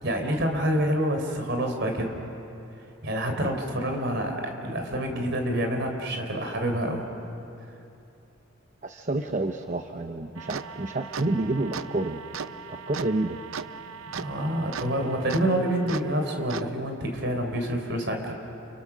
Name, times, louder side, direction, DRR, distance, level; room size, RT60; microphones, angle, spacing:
voice 1, 0.0-2.2 3.0-7.0 11.2-11.4 14.1-18.3, right 1 dB, 60° right, 4 dB, 4.0 m, -27 dB
voice 2, 8.8-12.2 12.7-13.4, right 2 dB, 40° right, 5 dB, 0.8 m, -29 dB
sound 1, 10.3-16.7, right 6 dB, 85° right, 0.6 m, -38 dB
30.0 x 29.5 x 6.2 m, 2.8 s
head